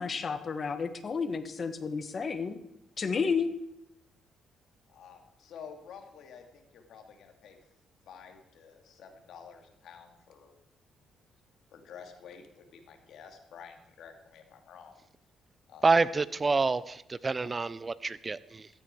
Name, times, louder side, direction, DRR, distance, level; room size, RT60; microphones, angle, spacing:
voice 1, 0.0-2.6 3.0-3.5, left 5 dB, 45° left, 10 dB, 1.7 m, -31 dB
voice 2, 4.9-7.6 8.1-10.5 11.7-15.0 15.7-16.0, left 7 dB, 75° left, 5 dB, 2.8 m, -50 dB
voice 3, 15.8-18.7, right 3 dB, 30° right, 17 dB, 0.7 m, -27 dB
16.0 x 13.5 x 4.8 m, 0.81 s
cardioid pair, 90°, 0 cm